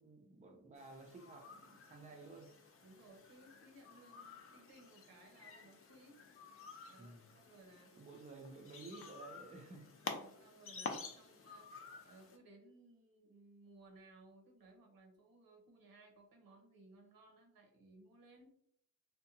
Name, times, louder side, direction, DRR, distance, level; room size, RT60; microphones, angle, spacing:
voice 1, 0.0-2.5 7.0-7.3 7.9-9.9, right 3 dB, 20° right, 2 dB, 0.4 m, -54 dB
sound 1, 0.8-12.4, left 4 dB, 40° left, 0.4 m, -51 dB
voice 2, 2.8-6.3 6.9-8.0 10.0-18.5, right 2 dB, 80° right, 2 dB, 0.8 m, -62 dB
2.6 x 2.1 x 2.7 m, 0.68 s
cardioid pair, 105°, 35 cm